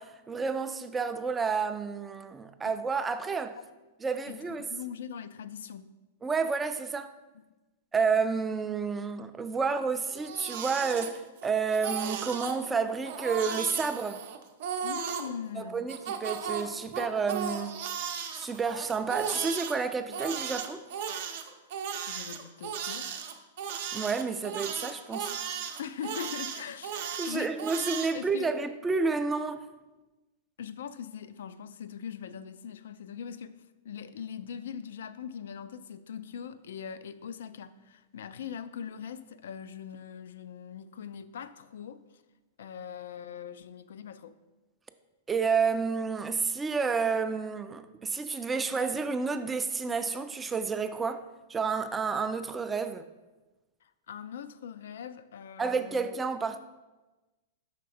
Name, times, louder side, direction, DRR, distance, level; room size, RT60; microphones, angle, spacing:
voice 1, 0.0-3.6 4.0-4.7 6.2-7.1 7.9-14.2 15.6-17.7 18.3-20.8 23.9-25.3 27.2-29.7 45.3-53.0 55.6-56.6, right 5 dB, 15° right, 0.4 m, -30 dB
voice 2, 4.3-6.0 14.8-15.8 22.1-23.1 25.8-27.6 28.1-28.5 30.6-33.6 33.8-42.0 42.6-44.4 53.8-56.1, left 8 dB, 75° left, 0.3 m, -41 dB
Crying sobbing, 10.0-11.5 11.7-12.6 13.0-15.3 15.9-19.7 20.1-28.1, right 7 dB, 60° right, 0.6 m, -35 dB
5.7 x 3.4 x 4.9 m
hypercardioid pair, 125°, 0 cm